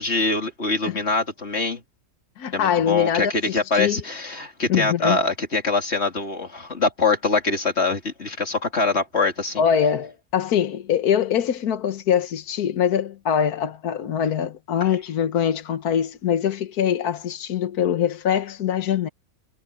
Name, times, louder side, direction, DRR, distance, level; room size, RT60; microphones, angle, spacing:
voice 1, 0.0-1.8 2.5-9.6 14.8-14.9, left 3 dB, 45° left, 3.2 m, -24 dB
voice 2, 2.4-4.0 4.7-5.2 9.6-19.1, left 8 dB, 80° left, 1.6 m, -23 dB
omnidirectional pair, 1.6 m